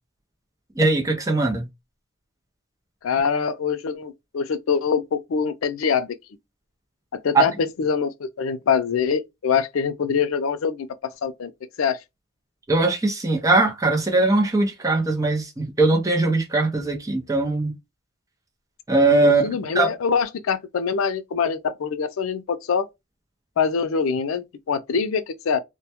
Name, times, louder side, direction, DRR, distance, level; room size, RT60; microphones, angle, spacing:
voice 1, 0.8-1.7 7.3-7.4 12.7-17.7 18.9-19.5 19.7-19.9, right 3 dB, 15° right, 0.5 m, -20 dB
voice 2, 3.0-6.2 7.2-10.9 11.2-11.5 11.8-12.0 19.2-22.9 23.6-25.6, left 6 dB, 90° left, 0.4 m, -24 dB
2.2 x 2.1 x 2.8 m
head